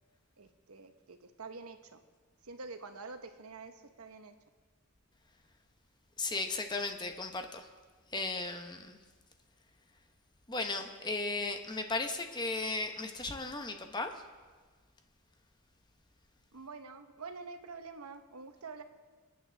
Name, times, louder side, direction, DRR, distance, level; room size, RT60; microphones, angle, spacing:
voice 1, 0.4-2.0 2.4-4.3 16.5-18.8, right 4 dB, 85° right, 7 dB, 1.0 m, -47 dB
voice 2, 6.2-7.7 8.1-9.0 10.5-14.1, left 3 dB, 20° left, 6 dB, 0.9 m, -36 dB
27.0 x 9.3 x 3.4 m, 1.5 s
head